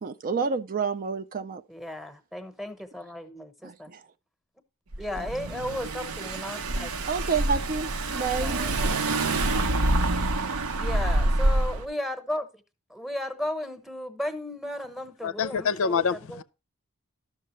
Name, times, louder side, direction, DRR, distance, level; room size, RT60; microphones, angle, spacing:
voice 1, 0.0-1.6 3.6-4.0 5.2-5.3 7.1-8.6, right 5 dB, 40° right, 0.4 m, -29 dB
voice 2, 1.7-3.9 5.0-6.9 8.4-9.0 10.8-12.6 12.9-16.4, left 1 dB, ahead, 0.9 m, -35 dB
Car / Engine, 4.9-11.9, right 2 dB, 70° right, 0.8 m, -26 dB
voice 3, 15.2-16.4, left 6 dB, 65° left, 0.5 m, -26 dB
12.0 x 6.5 x 3.0 m
head